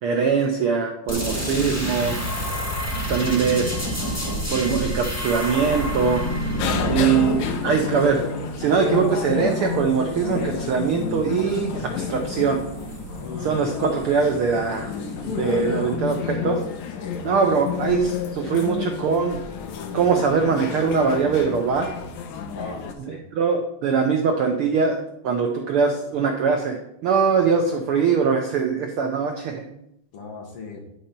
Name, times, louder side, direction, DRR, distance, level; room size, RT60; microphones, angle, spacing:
voice 1, 0.0-2.2 3.1-4.0 4.5-6.2 6.9-8.3 8.6-12.6 13.4-15.0 15.2-16.6 17.2-19.4 19.9-21.9 23.1-26.8 27.0-29.7, right 5 dB, 90° right, 3 dB, 1.2 m, -22 dB
sound 1, 1.1-8.6, equal, 20° left, 0.3 m, -28 dB
sound 2, 6.6-22.9, left 6 dB, 75° left, 2.0 m, -30 dB
voice 2, 6.7-7.4 13.2-13.7 17.0-17.5 22.5-23.2 30.1-30.9, left 3 dB, 55° left, 1 dB, 2.1 m, -38 dB
sound 3, 6.9-16.0, right 4 dB, 60° right, 2.0 m, -41 dB
10.5 x 4.3 x 5.3 m, 0.78 s
omnidirectional pair, 3.5 m